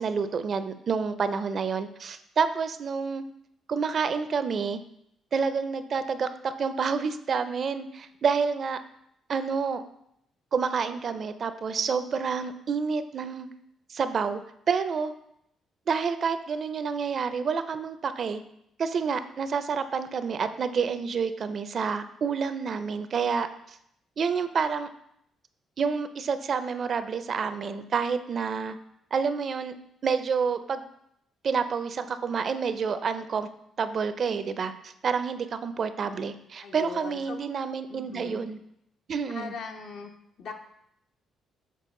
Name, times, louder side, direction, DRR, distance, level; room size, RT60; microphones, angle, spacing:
voice 1, 0.0-3.2 3.7-4.8 5.3-8.8 9.3-9.8 10.5-13.5 13.9-14.4 14.7-15.1 15.9-18.4 18.8-23.8 24.2-24.9 25.8-28.8 29.1-29.8 30.0-30.8 31.4-33.5 33.8-38.6 39.1-39.5, right 5 dB, 50° right, 11 dB, 0.4 m, -28 dB
voice 2, 36.6-37.4 37.9-38.5 39.3-40.1 40.4-40.5, left 5 dB, 70° left, 4 dB, 0.8 m, -39 dB
6.8 x 4.1 x 3.7 m, 0.75 s
cardioid pair, 90°, 0 cm